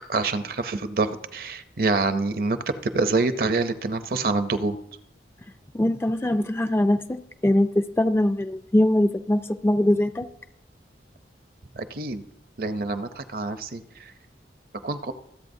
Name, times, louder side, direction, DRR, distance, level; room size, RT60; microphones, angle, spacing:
voice 1, 0.1-4.8 11.7-12.2 12.6-14.1 14.8-15.1, right 3 dB, 55° right, 11 dB, 0.6 m, -26 dB
voice 2, 5.7-10.3, left 1 dB, 15° left, 9 dB, 0.3 m, -22 dB
24.0 x 8.3 x 2.7 m, 0.79 s
head